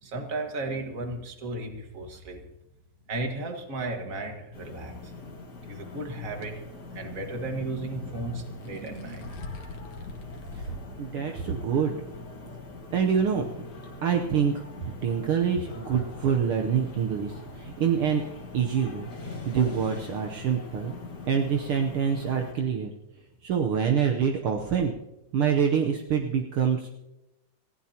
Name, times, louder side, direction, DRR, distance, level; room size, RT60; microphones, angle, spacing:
voice 1, 0.0-2.4 3.1-5.1 5.7-6.6 6.9-9.5 10.7-10.8, right 2 dB, 35° right, 3 dB, 1.6 m, -34 dB
sound 1, 4.5-22.5, left 3 dB, 35° left, 2.0 m, -43 dB
sound 2, 6.4-6.5 8.5-10.8 11.3-11.4 12.1-12.2, left 2 dB, 55° left, 2.5 m, -41 dB
voice 2, 11.0-11.9 12.9-13.5 14.0-14.5 15.0-18.2 18.5-20.9 21.3-22.9 23.4-24.9 25.3-26.9, right 7 dB, 70° right, 2 dB, 1.3 m, -26 dB
27.0 x 15.5 x 2.9 m, 0.94 s
omnidirectional pair, 3.6 m